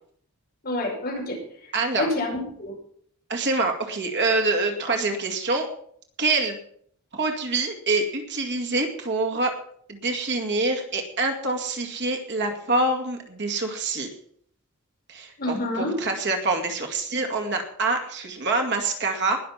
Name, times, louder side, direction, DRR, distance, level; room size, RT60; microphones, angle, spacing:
voice 1, 0.6-2.7 15.4-16.0, left 1 dB, 45° left, -1 dB, 5.6 m, -28 dB
voice 2, 1.7-2.1 3.3-5.7 6.2-6.6 7.1-9.5 9.9-14.1 15.1-19.4, right 3 dB, 55° right, 3 dB, 2.2 m, -25 dB
20.5 x 6.8 x 5.8 m, 0.62 s
head